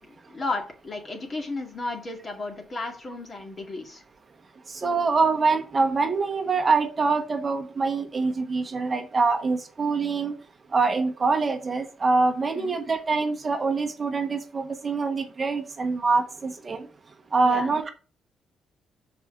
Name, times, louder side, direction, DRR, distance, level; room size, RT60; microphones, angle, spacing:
voice 1, 0.1-4.0 12.5-12.8 17.4-17.7, left 3 dB, 35° left, 3 dB, 2.2 m, -34 dB
voice 2, 4.7-10.3 10.7-16.9 17.3-17.9, right 4 dB, 35° right, 4 dB, 1.2 m, -24 dB
6.0 x 4.9 x 5.8 m, 0.38 s
cardioid pair, 90°, 0 cm